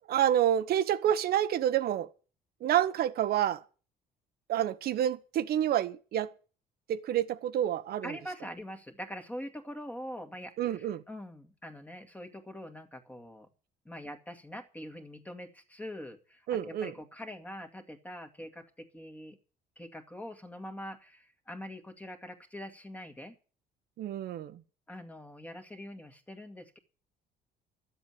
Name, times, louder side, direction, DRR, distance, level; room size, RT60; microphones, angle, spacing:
voice 1, 0.1-2.1 2.6-3.6 4.5-6.3 6.9-8.2 10.6-11.0 16.5-16.9 24.0-24.6, right 11 dB, 65° right, 1.2 m, -28 dB
voice 2, 8.0-13.5 13.9-19.4 19.8-23.4 24.9-26.8, equal, 10° left, 2.2 m, -44 dB
12.5 x 8.0 x 9.3 m
cardioid pair, 110°, 17 cm